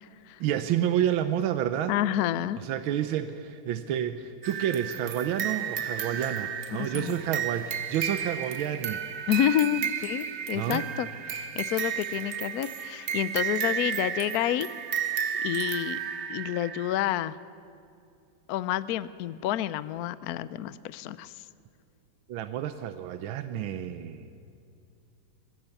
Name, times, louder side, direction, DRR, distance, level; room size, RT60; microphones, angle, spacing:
voice 1, 0.4-2.0 2.6-9.0 10.5-10.9 22.3-24.3, right 10 dB, 85° right, 10 dB, 1.5 m, -29 dB
voice 2, 1.9-2.6 6.7-7.1 9.3-14.7 15.4-16.0 16.3-17.4 18.5-21.3, left 12 dB, 70° left, 15 dB, 0.9 m, -29 dB
sound 1, 4.4-17.0, right 8 dB, 55° right, 0.7 m, -33 dB
20.0 x 16.0 x 8.2 m, 2.5 s
omnidirectional pair, 2.2 m